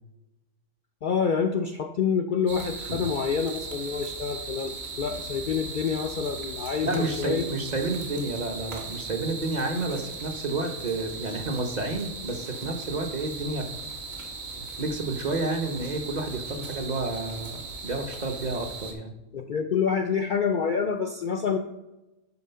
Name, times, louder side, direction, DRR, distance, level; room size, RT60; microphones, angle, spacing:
voice 1, 1.0-7.4 19.3-21.6, left 6 dB, 55° left, 5 dB, 0.6 m, -27 dB
sound 1, 2.5-18.9, right 3 dB, 55° right, 1.6 m, -38 dB
voice 2, 6.8-13.7 14.6-19.1, right 2 dB, 40° right, 4 dB, 0.9 m, -30 dB
9.7 x 4.5 x 5.6 m, 0.99 s
omnidirectional pair, 1.3 m